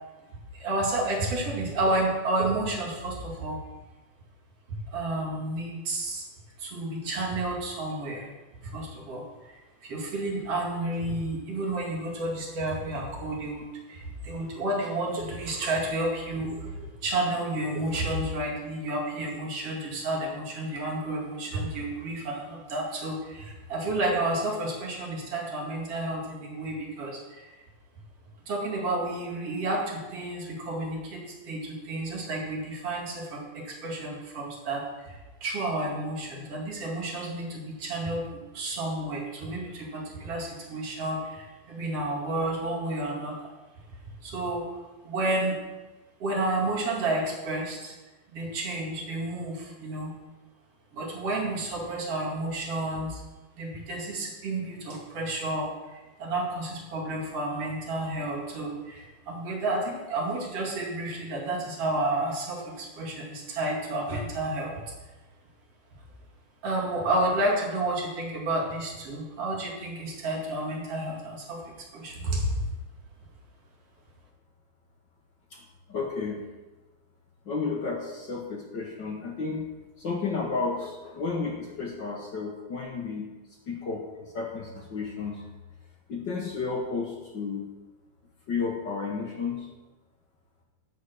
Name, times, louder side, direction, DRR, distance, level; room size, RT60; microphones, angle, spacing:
voice 1, 0.5-3.6 4.7-6.3 6.6-8.3 8.6-27.6 28.5-38.3 38.5-43.5 44.2-44.7 45.0-45.6 46.2-48.0 48.3-50.1 50.9-53.2 53.5-64.8 66.6-72.7, right 2 dB, 50° right, -2 dB, 3.2 m, -31 dB
voice 2, 75.9-76.4 77.4-79.6 80.0-83.3 83.7-85.5 86.1-87.7 88.5-89.7, left 4 dB, 50° left, 0 dB, 1.5 m, -32 dB
10.5 x 8.5 x 6.5 m, 1.1 s
omnidirectional pair, 3.5 m